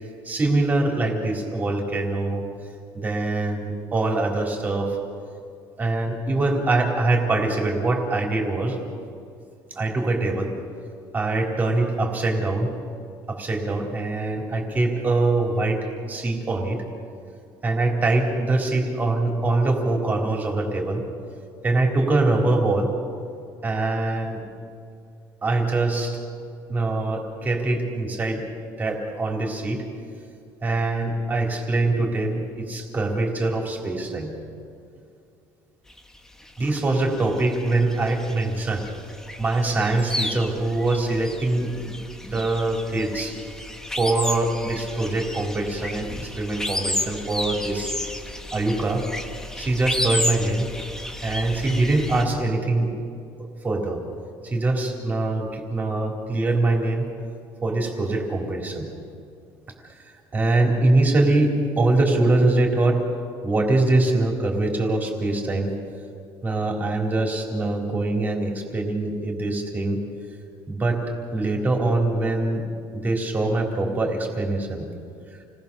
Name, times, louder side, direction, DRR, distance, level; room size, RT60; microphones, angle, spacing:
voice 1, 0.2-2.4 2.9-5.0 5.8-8.8 9.7-10.5 11.1-12.7 13.3-16.8 17.6-21.0 21.6-22.9 23.6-24.4 25.4-26.2 26.7-28.4 28.8-29.8 30.6-34.3 36.6-38.9 39.4-41.9 42.2-43.4 44.0-48.0 48.5-49.1 49.6-50.7 51.2-52.9 53.4-54.0 54.4-57.1 57.6-58.9 60.3-63.0 63.4-65.7 66.4-70.0 70.7-71.0 71.3-74.9, right 2 dB, 20° right, 1 dB, 3.8 m, -23 dB
sound 1, 35.9-52.2, left 1 dB, 5° left, 1.4 m, -32 dB
29.5 x 19.5 x 7.0 m, 2.4 s
cardioid pair, 150°, 8 cm